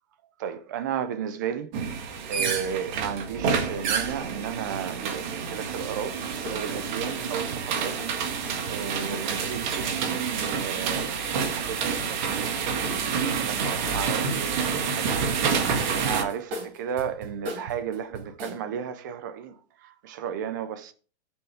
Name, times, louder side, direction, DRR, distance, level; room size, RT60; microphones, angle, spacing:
voice 1, 0.4-1.7 2.3-6.2 6.5-8.0 8.3-8.4 8.7-12.5 13.0-19.5 20.0-20.9, right 8 dB, 20° right, 0.4 m, -34 dB
sound 1, 1.7-16.2, right 6 dB, 45° right, 1.7 m, -28 dB
sound 2, 6.4-6.6 7.1-10.4 11.0-12.5 12.8-14.2 14.4-18.6, right 2 dB, 60° right, 4.3 m, -40 dB
13.0 x 6.9 x 3.4 m
supercardioid pair, 165°, 33 cm